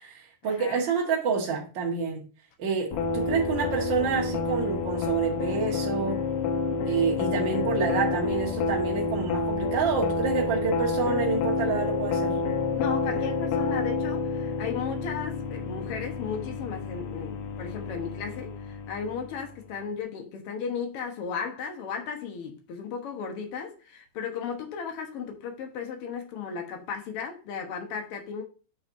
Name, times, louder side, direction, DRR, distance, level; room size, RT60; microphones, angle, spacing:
voice 1, 0.0-2.2 2.6-6.2 6.8-12.4, right 5 dB, 45° right, 1.6 m, -28 dB
sound 1, 2.9-19.7, left 4 dB, 80° left, 2.5 m, -29 dB
voice 2, 12.8-28.4, left 6 dB, 60° left, 1.6 m, -35 dB
8.2 x 5.8 x 2.6 m
omnidirectional pair, 4.0 m